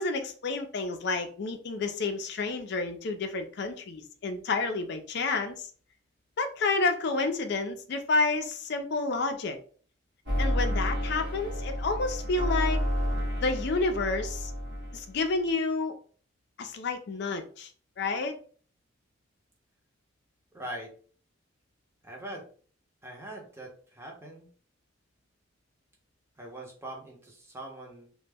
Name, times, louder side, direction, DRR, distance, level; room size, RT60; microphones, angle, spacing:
voice 1, 0.0-5.7 6.4-9.6 10.4-12.8 13.4-14.5 14.9-15.9 16.6-17.7 18.0-18.4, left 3 dB, 60° left, 0.4 m, -30 dB
sound 1, 10.3-15.2, equal, 55° right, 0.9 m, -30 dB
voice 2, 20.5-20.9 22.0-22.5 23.0-24.5 26.4-28.1, right 1 dB, 15° right, 0.6 m, -42 dB
2.1 x 2.0 x 3.3 m
head